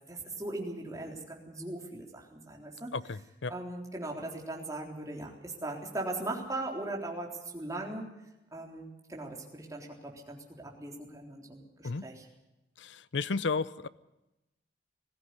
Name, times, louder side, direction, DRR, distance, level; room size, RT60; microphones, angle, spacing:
voice 1, 0.1-2.9 3.5-8.1 8.5-12.2, right 2 dB, 20° right, -1 dB, 3.7 m, -39 dB
voice 2, 2.9-3.5 11.8-12.1 12.8-13.9, left 4 dB, 85° left, 17 dB, 0.7 m, -33 dB
20.5 x 15.5 x 9.8 m, 0.96 s
head